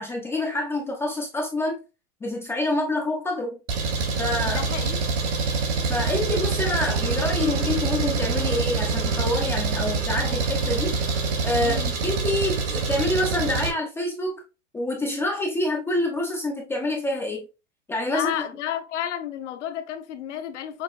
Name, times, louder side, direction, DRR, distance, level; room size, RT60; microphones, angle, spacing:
voice 1, 0.0-1.8 2.2-3.6 4.2-4.6 5.9-11.0 11.4-14.4 14.7-17.5 17.9-18.4, left 1 dB, 5° left, 0.4 m, -27 dB
Engine, 3.7-13.7, right 4 dB, 75° right, 1.9 m, -25 dB
voice 2, 4.4-5.0 11.6-11.9 18.1-20.8, left 10 dB, 75° left, 1.0 m, -31 dB
6.3 x 2.7 x 2.4 m
supercardioid pair, 145°, 36 cm